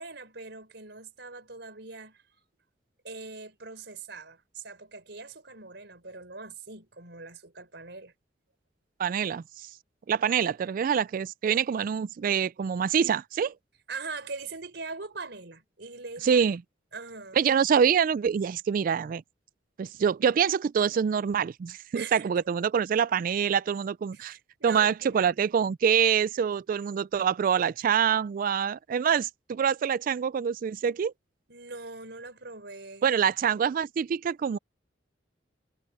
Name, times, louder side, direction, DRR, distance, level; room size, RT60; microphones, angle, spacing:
voice 1, 0.0-2.2 3.0-8.1 13.9-16.4 16.9-17.4 21.9-22.2 24.1-25.3 31.5-33.3, right 4 dB, 70° right, 5.0 m, -41 dB
voice 2, 9.0-9.7 10.1-13.5 16.2-16.6 17.3-19.2 19.8-24.4 24.6-31.1 33.0-34.6, right 7 dB, 50° right, 0.3 m, -25 dB
head